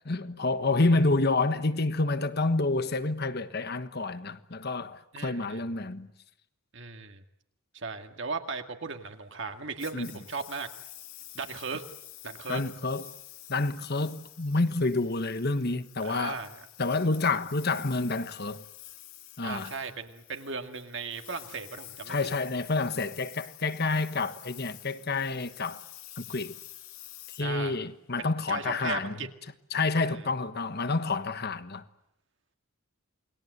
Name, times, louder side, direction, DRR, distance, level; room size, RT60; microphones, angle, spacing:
voice 1, 0.1-6.1 9.9-10.1 12.5-13.1 13.5-16.4 16.8-18.6 19.4-19.7 22.1-25.8 26.2-26.5 27.3-29.1 29.7-31.8, left 3 dB, 45° left, 1.3 m, -28 dB
voice 2, 5.1-5.6 6.7-7.2 7.7-10.7 11.3-11.8 12.2-12.6 16.0-16.7 19.4-22.2 27.4-27.7 28.2-29.3 30.0-30.2, right 4 dB, 55° right, 2.1 m, -37 dB
Engine, 9.8-28.2, left 14 dB, 75° left, 1.9 m, -49 dB
29.0 x 21.5 x 8.0 m
head